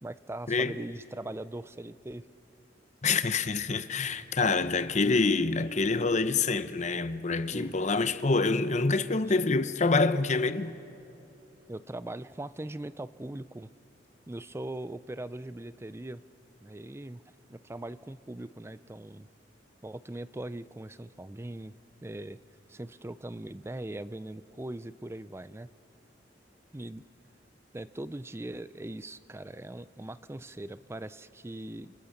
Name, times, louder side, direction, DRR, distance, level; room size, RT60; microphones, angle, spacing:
voice 1, 0.0-2.3 7.5-7.8 11.7-13.7 14.3-16.2 16.6-17.2 17.5-19.3 19.8-21.7 22.0-22.4 22.7-25.7 26.7-27.0 27.7-31.9, right 1 dB, 15° right, 0.5 m, -40 dB
voice 2, 3.0-10.7, left 3 dB, 40° left, 0.8 m, -26 dB
29.0 x 26.0 x 6.6 m
head